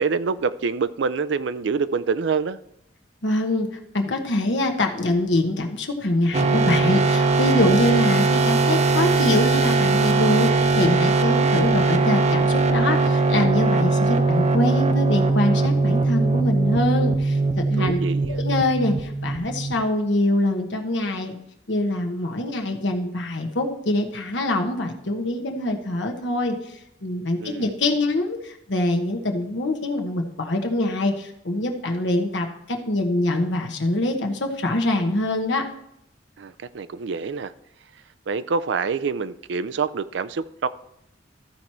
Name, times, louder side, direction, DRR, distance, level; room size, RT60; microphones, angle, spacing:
voice 1, 0.0-2.6 17.8-18.4 27.4-27.7 36.4-37.5 38.3-40.7, right 5 dB, 70° right, 14 dB, 0.4 m, -26 dB
voice 2, 3.2-3.7 3.9-18.0 18.3-21.4 21.7-35.7, left 1 dB, 70° left, 3 dB, 1.1 m, -24 dB
sound 1, 6.3-19.9, right 3 dB, 35° right, 0.7 m, -20 dB
14.0 x 4.7 x 4.3 m, 0.78 s
head